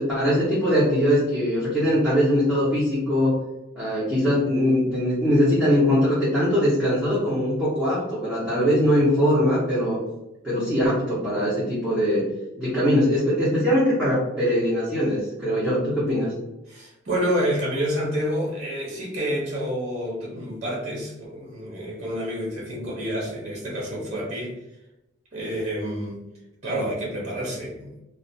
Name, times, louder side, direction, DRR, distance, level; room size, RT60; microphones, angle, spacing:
voice 1, 0.0-3.4 3.8-10.0 10.4-12.2 12.6-16.3, equal, 5° left, -12 dB, 0.7 m, -21 dB
voice 2, 16.7-24.6 25.3-26.2 26.6-27.9, equal, 35° right, -4 dB, 0.6 m, -28 dB
2.4 x 2.1 x 2.6 m, 0.92 s
head